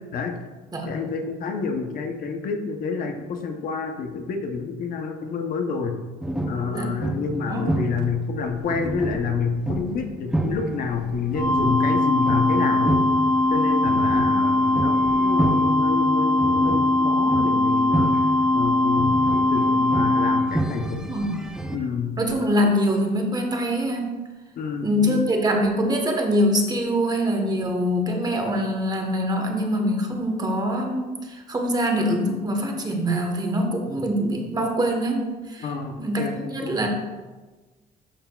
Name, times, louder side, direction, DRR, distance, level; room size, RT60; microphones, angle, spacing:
voice 1, 0.8-6.0 6.5-13.0 13.5-18.2 18.5-19.2 19.5-21.1 21.7-22.2 24.6-25.2 35.6-36.8, left 5 dB, 60° left, 5 dB, 0.7 m, -28 dB
sound 1, 6.2-21.8, right 1 dB, 5° right, 0.5 m, -30 dB
sound 2, 11.3-20.4, left 2 dB, 25° left, 1.6 m, -20 dB
voice 2, 20.9-21.3 22.2-24.2 24.8-35.7 36.0-36.9, equal, 25° right, 2 dB, 1.1 m, -24 dB
11.5 x 4.5 x 2.3 m, 1.3 s
cardioid pair, 110°, 17 cm